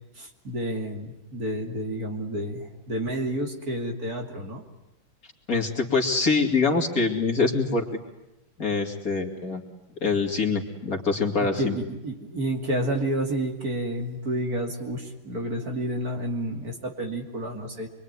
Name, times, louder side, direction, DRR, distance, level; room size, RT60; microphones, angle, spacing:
voice 1, 0.2-4.6 11.4-17.9, right 1 dB, 45° right, 3 dB, 3.2 m, -30 dB
voice 2, 5.5-8.0 8.6-9.6 10.0-11.8, left 4 dB, 40° left, 2 dB, 3.1 m, -24 dB
25.5 x 23.5 x 9.8 m, 0.95 s
omnidirectional pair, 2.2 m